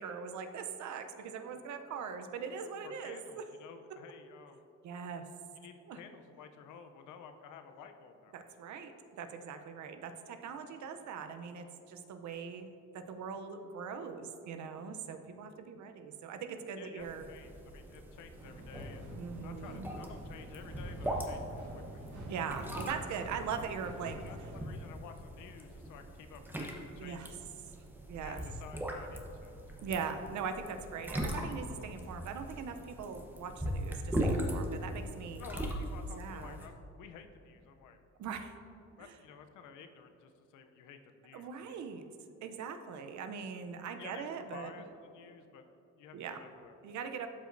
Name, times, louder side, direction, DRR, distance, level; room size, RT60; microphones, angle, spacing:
voice 1, 0.0-3.5 4.8-5.3 5.9-6.0 8.3-12.7 12.9-17.3 19.1-19.9 22.3-24.2 27.0-27.3 28.1-28.4 29.8-35.4 36.2-36.6 38.2-38.5 39.0-39.1 41.3-42.1 42.4-44.7 46.1-46.4 46.8-47.3, right 6 dB, 70° right, 7 dB, 0.7 m, -41 dB
voice 2, 2.8-4.7 5.6-8.4 16.8-19.1 19.4-22.0 24.2-27.4 28.2-29.6 35.4-38.0 39.0-41.8 44.0-45.6 46.0-46.8, left 6 dB, 90° left, 7 dB, 0.6 m, -52 dB
sound 1, 17.0-36.7, right 1 dB, 5° right, 1.0 m, -40 dB
sound 2, 18.4-24.6, right 1 dB, 85° right, 1.7 m, -46 dB
12.0 x 5.1 x 2.6 m, 2.8 s
cardioid pair, 90°, 30 cm